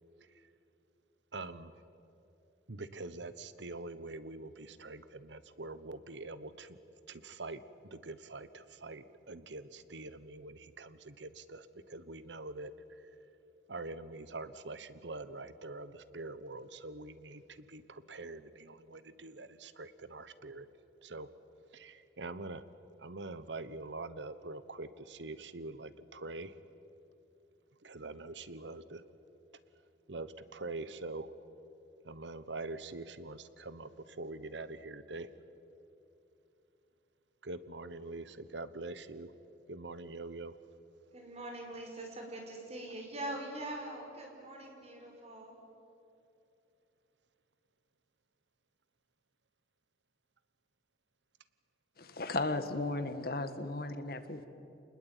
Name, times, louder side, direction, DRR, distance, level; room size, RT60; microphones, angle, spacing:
voice 1, 1.3-1.8 2.7-6.8 7.1-13.1 13.7-20.7 21.0-21.3 21.7-22.6 23.0-26.6 27.8-29.0 30.1-31.3 32.0-35.3 37.4-39.3 39.7-40.6, right 2 dB, 90° right, 14 dB, 1.2 m, -44 dB
voice 2, 41.1-45.6, right 1 dB, 35° right, 1 dB, 5.1 m, -43 dB
voice 3, 52.0-54.5, left 2 dB, 55° left, 10 dB, 1.6 m, -35 dB
27.5 x 20.5 x 9.1 m, 2.8 s
head